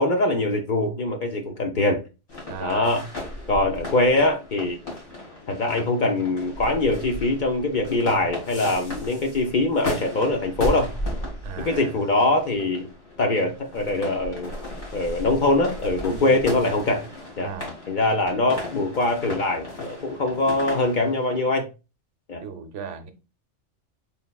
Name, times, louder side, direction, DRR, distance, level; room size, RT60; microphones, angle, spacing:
voice 1, 0.0-2.0 2.6-3.0 3.5-4.8 5.5-10.9 11.6-12.9 13.2-14.6 14.9-17.1 17.4-17.5 17.9-21.7 22.3-22.4, left 2 dB, 55° left, 0.6 m, -23 dB
sound 1, 2.3-21.4, left 1 dB, 70° left, 2.4 m, -36 dB
voice 2, 2.5-2.9 11.4-12.0 16.0-16.4 17.4-17.7 22.4-23.1, right 6 dB, 80° right, 0.9 m, -36 dB
4.1 x 3.5 x 2.2 m
omnidirectional pair, 1.2 m